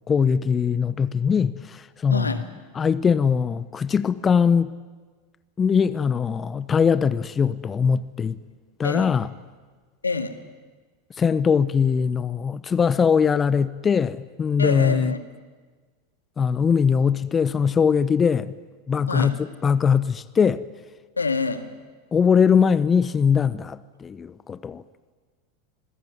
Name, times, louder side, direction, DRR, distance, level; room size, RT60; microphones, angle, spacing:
voice 1, 0.1-2.4 2.7-4.7 5.6-8.4 8.8-9.3 11.2-15.1 16.4-18.5 18.9-20.6 22.1-24.8, left 6 dB, 25° left, 0.9 m, -21 dB
voice 2, 2.1-2.4 8.8-9.1 10.0-10.4 14.6-15.2 19.1-19.4 21.2-21.7, left 4 dB, 90° left, 2.0 m, -26 dB
27.0 x 20.5 x 9.6 m
hypercardioid pair, 90°, 0 cm